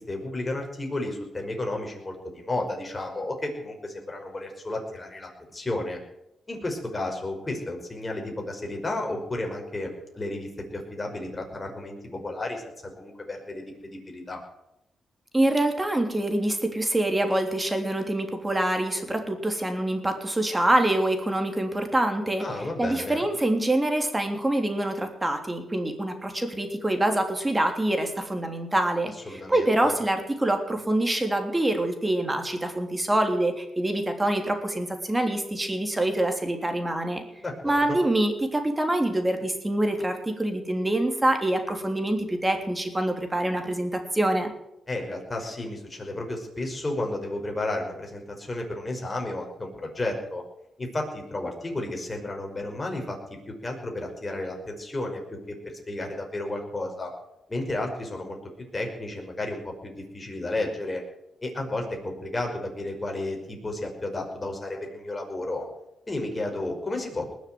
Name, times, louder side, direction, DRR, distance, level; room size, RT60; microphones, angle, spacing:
voice 1, 0.0-6.0 6.5-14.4 22.4-23.2 29.2-30.0 37.4-37.8 44.9-50.4 50.8-55.4 55.6-57.1 57.5-58.4 58.7-61.0 61.4-65.7 66.1-67.3, left 2 dB, 25° left, 1 dB, 5.6 m, -32 dB
voice 2, 15.3-22.4 22.8-37.2 37.6-44.5, right 1 dB, 15° right, 5 dB, 3.3 m, -25 dB
20.0 x 7.4 x 9.4 m, 0.85 s
cardioid pair, 80°, 0 cm